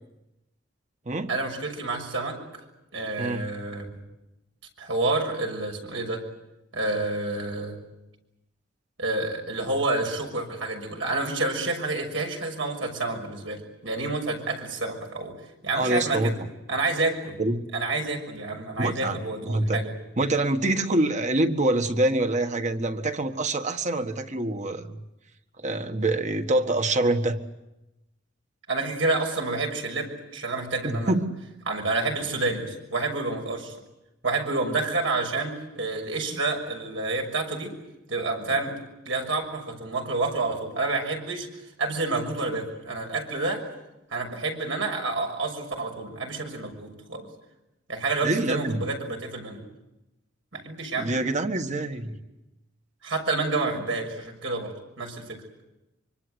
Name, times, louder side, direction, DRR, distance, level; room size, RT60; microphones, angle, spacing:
voice 1, 1.3-2.4 2.9-3.9 4.8-6.2 6.7-7.8 9.0-15.3 15.6-16.4 16.7-17.4 17.7-19.9 28.7-31.1 31.7-33.7 34.2-37.7 38.1-38.8 39.0-41.5 41.8-43.6 44.1-47.3 47.9-49.6 50.5-51.1 51.9-52.0 53.0-55.4, right 3 dB, 80° right, 3 dB, 6.3 m, -29 dB
voice 2, 3.2-3.5 15.7-16.4 17.4-17.7 18.7-19.2 19.4-19.8 20.2-25.0 25.6-27.4 30.8-31.3 36.3-36.4 48.2-48.8 51.0-52.2, right 2 dB, 40° right, 7 dB, 1.6 m, -25 dB
25.0 x 25.0 x 8.0 m, 0.93 s
head